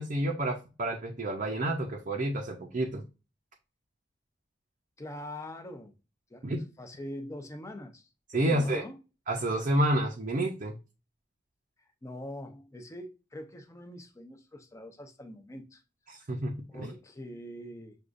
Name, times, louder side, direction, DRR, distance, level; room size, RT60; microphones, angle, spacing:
voice 1, 0.0-3.0 6.4-6.6 8.3-8.8 9.3-10.8 16.1-16.9, right 1 dB, 45° right, 0.6 m, -29 dB
voice 2, 5.0-5.9 6.3-9.0 12.0-15.8 16.2-16.3 16.7-18.0, left 1 dB, 15° left, 0.6 m, -43 dB
6.4 x 2.4 x 2.5 m
head